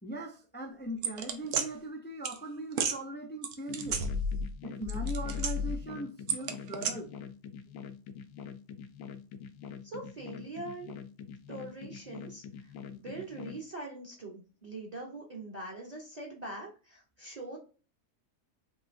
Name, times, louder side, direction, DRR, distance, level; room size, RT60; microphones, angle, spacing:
voice 1, 0.0-4.1 4.6-7.1, right 1 dB, 15° left, 0.3 m, -40 dB
sound 1, 1.0-1.7 2.2-2.4 2.7-3.0 3.4-4.5 4.8-5.8 6.3-6.9, right 2 dB, 85° right, 1.2 m, -31 dB
sound 2, 3.7-13.6, left 7 dB, 70° left, 1.0 m, -45 dB
voice 2, 9.8-10.9 11.5-17.6, right 2 dB, 30° right, 0.9 m, -43 dB
5.1 x 3.1 x 2.6 m
omnidirectional pair, 1.5 m